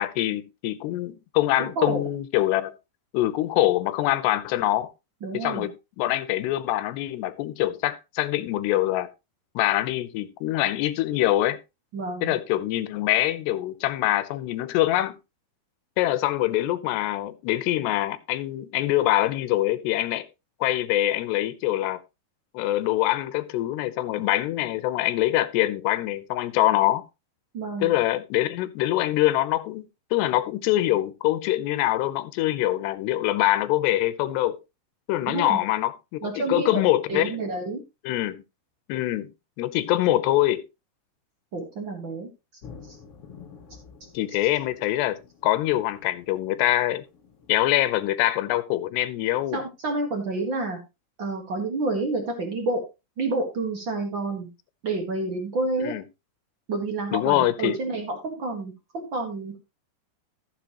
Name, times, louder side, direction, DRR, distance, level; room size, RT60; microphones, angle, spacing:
voice 1, 0.0-2.7 3.1-4.9 5.3-9.1 9.6-11.6 12.2-15.2 16.0-20.3 20.6-22.0 22.5-27.0 27.8-34.6 35.1-37.3 38.0-38.4 38.9-39.3 39.6-40.7 44.1-47.1 47.5-49.6 55.8-56.0 57.1-57.8, left 15 dB, 80° left, 2.9 m, -24 dB
voice 2, 1.6-2.0 5.2-5.7 11.9-12.3 27.5-27.9 35.3-35.6 36.2-36.8 37.1-37.8 41.5-42.3 49.5-50.8 51.2-52.8 53.2-54.5 54.8-56.0 56.7-59.6, right 2 dB, 65° right, 1.1 m, -29 dB
sound 1, 42.6-47.7, left 6 dB, 50° left, 1.9 m, -49 dB
14.0 x 7.5 x 3.0 m
omnidirectional pair, 4.9 m